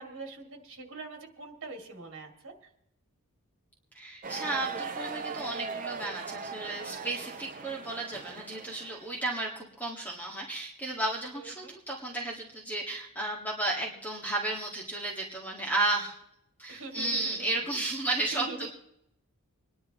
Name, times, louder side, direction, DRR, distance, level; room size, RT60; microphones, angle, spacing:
voice 1, 0.0-2.5 11.3-11.8 16.7-17.6 18.2-18.7, right 3 dB, 60° right, 3 dB, 2.2 m, -43 dB
voice 2, 3.9-16.2 16.6-18.7, right 2 dB, 10° left, -2 dB, 1.7 m, -33 dB
sound 1, 4.2-9.1, right 5 dB, 35° right, 0.6 m, -39 dB
26.0 x 10.5 x 3.0 m, 0.79 s
head